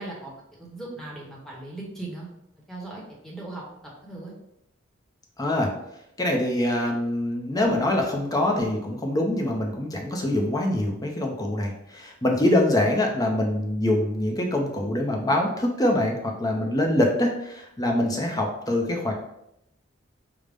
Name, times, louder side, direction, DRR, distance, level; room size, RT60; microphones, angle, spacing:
voice 1, 0.0-2.3 2.7-3.6 4.0-4.3, right 2 dB, ahead, -3 dB, 0.9 m, -38 dB
voice 2, 5.4-5.7 6.2-19.1, left 1 dB, 20° left, 1 dB, 0.6 m, -24 dB
5.1 x 2.1 x 3.4 m, 0.80 s
head